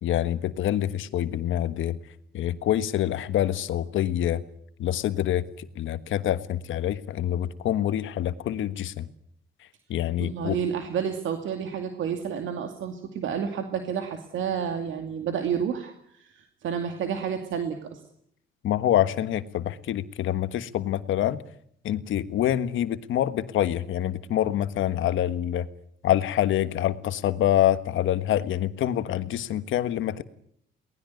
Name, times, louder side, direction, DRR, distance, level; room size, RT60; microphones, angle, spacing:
voice 1, 0.0-2.0 2.3-4.4 4.8-9.1 9.9-10.6 18.6-21.4 21.8-25.7 26.0-30.2, left 11 dB, 80° left, 12 dB, 1.5 m, -26 dB
voice 2, 10.2-18.0, right 7 dB, 75° right, 5 dB, 2.5 m, -30 dB
23.0 x 19.0 x 9.4 m, 0.69 s
cardioid pair, 90°, 20 cm